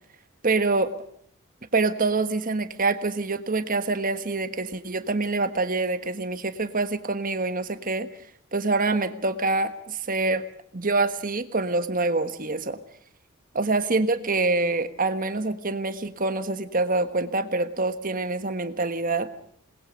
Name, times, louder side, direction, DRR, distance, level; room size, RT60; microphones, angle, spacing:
voice 1, 0.4-0.9 1.7-8.1 8.5-10.4 10.7-12.8 13.5-19.3, right 3 dB, 40° right, 10 dB, 1.4 m, -25 dB
27.5 x 20.0 x 5.2 m, 0.65 s
head